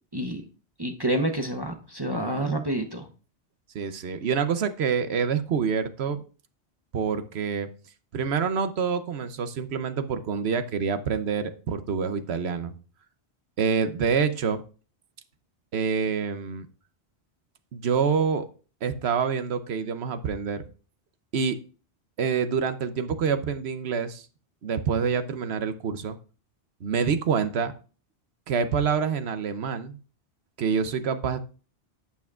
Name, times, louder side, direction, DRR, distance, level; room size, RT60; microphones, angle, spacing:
voice 1, 0.8-3.1, right 1 dB, 25° right, 0.8 m, -28 dB
voice 2, 2.1-2.6 3.7-6.2 6.9-7.7 8.1-12.7 13.6-14.6 15.7-16.7 17.7-18.4 18.8-20.6 21.3-21.6 22.2-24.3 24.6-26.2 26.8-27.7 28.5-30.0 30.6-31.4, right 6 dB, 75° right, 1.0 m, -27 dB
11.5 x 8.2 x 2.4 m
omnidirectional pair, 1.1 m